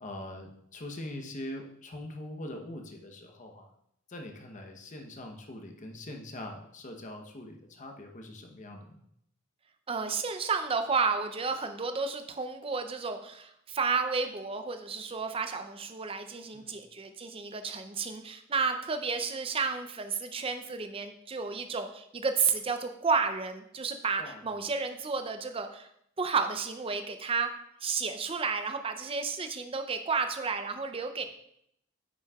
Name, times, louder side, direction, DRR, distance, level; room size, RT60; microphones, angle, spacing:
voice 1, 0.0-3.7 4.1-9.0 16.5-16.8 24.2-24.6 31.2-31.3, left 1 dB, 35° left, 3 dB, 0.9 m, -43 dB
voice 2, 9.9-25.9 26.2-27.5 27.8-31.2, right 5 dB, 25° right, 7 dB, 0.5 m, -32 dB
9.2 x 6.2 x 2.3 m, 0.73 s
head